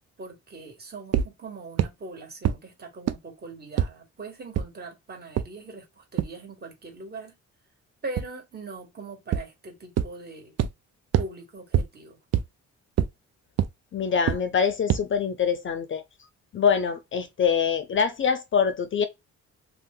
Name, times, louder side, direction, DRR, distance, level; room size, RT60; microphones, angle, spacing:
voice 1, 0.2-7.3 8.0-10.5 11.2-12.2, right 3 dB, 30° right, 1.6 m, -41 dB
sound 1, 1.1-1.3 1.8-1.9 2.4-2.5 3.1-3.2 3.8-3.9 4.6-4.7 5.4-5.5 6.2-6.3 8.2-8.3 9.3-9.4 10.0-10.1 10.6-10.7 11.1-11.3 11.7-11.8 12.3-12.4 13.0-13.1 13.6-13.7 14.3-14.4 14.9-15.0, right 10 dB, 55° right, 0.5 m, -22 dB
voice 2, 13.9-16.0 16.5-19.1, left 7 dB, 40° left, 0.5 m, -24 dB
2.6 x 2.1 x 3.7 m
cardioid pair, 90°, 30 cm